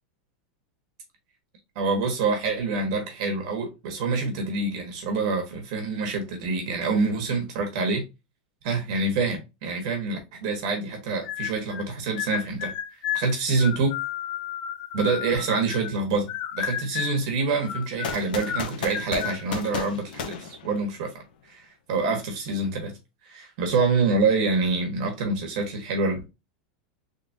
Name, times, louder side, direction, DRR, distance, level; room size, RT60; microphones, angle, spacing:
voice 1, 1.7-8.0 8.6-12.7 13.1-13.9 14.9-21.1 21.5-21.6 21.9-22.9 23.2-26.3, right 3 dB, 45° right, 1.3 m, -26 dB
sound 1, 11.2-11.9 12.2-16.0 16.3-17.3 17.6-19.4, left 10 dB, 30° left, 0.4 m, -32 dB
sound 2, 18.0-21.2, left 6 dB, 85° left, 0.8 m, -34 dB
3.6 x 3.6 x 2.7 m
supercardioid pair, 175°, 5 cm